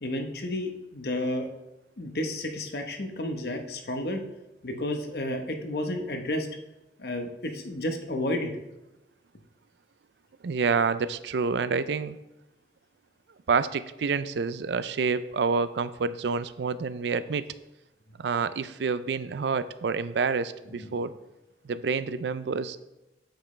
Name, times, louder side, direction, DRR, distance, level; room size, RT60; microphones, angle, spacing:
voice 1, 0.0-1.5 2.0-4.2 4.6-6.5 7.0-8.5 20.7-21.0, left 1 dB, 60° left, 4 dB, 1.0 m, -31 dB
voice 2, 10.4-12.2 13.5-17.5 18.2-21.1 21.6-22.8, right 5 dB, 75° right, 14 dB, 0.4 m, -28 dB
8.9 x 7.3 x 3.2 m, 0.98 s
head